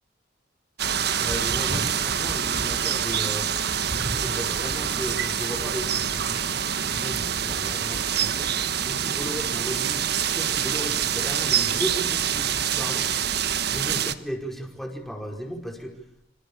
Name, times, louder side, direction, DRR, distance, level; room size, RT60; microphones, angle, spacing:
sound 1, 0.8-14.2, right 8 dB, 60° right, 1.4 m, -26 dB
voice 1, 1.1-3.5 4.2-8.5 8.8-10.0 10.3-13.1 13.7-16.0, equal, ahead, 3 dB, 5.0 m, -35 dB
sound 2, 1.3-2.9 3.7-9.1, equal, 40° right, 6.5 m, -38 dB
27.0 x 26.5 x 7.1 m, 0.73 s
head